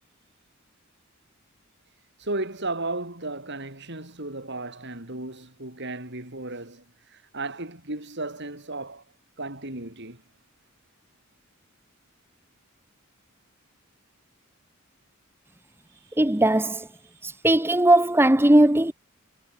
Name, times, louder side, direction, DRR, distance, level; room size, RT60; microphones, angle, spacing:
voice 1, 2.2-9.0 9.4-10.2 16.2-16.3, right 2 dB, 55° right, 7.4 m, -34 dB
voice 2, 16.2-16.9 17.2-18.9, right 1 dB, 10° right, 1.0 m, -19 dB
head